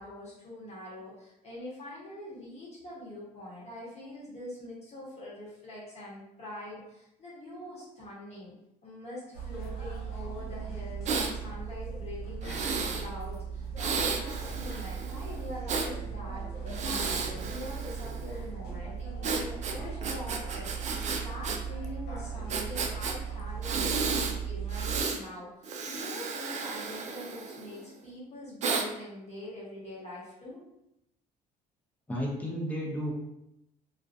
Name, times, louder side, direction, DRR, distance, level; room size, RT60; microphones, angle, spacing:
voice 1, 0.0-8.5 8.8-30.6, left 1 dB, 40° left, -7 dB, 1.0 m, -44 dB
sound 1, 9.3-25.0, right 6 dB, 80° left, 1.1 m, -37 dB
Breathing, 11.1-11.3 12.4-13.1 13.8-15.9 16.7-18.3 19.2-21.6 21.8-21.9 22.5-23.1 23.6-24.3 24.7-25.2 25.6-27.8 28.6-28.9, right 5 dB, 45° right, 0.4 m, -33 dB
voice 2, 32.1-33.1, equal, 10° left, -4 dB, 0.7 m, -32 dB
2.4 x 2.2 x 2.5 m, 0.84 s
cardioid pair, 110°, 17 cm